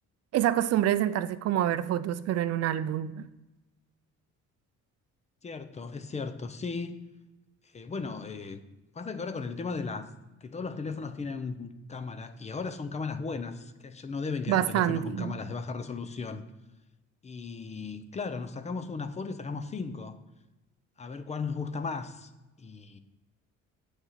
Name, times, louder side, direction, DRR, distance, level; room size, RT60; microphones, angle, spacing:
voice 1, 0.3-3.3 14.5-15.4, right 12 dB, 55° right, 0.5 m, -27 dB
voice 2, 5.4-7.0 7.7-8.6 8.9-10.1 10.4-16.4 17.2-20.2 21.0-22.3 22.6-23.0, left 4 dB, 25° left, 0.6 m, -36 dB
8.1 x 6.3 x 7.4 m
cardioid pair, 160°, 30 cm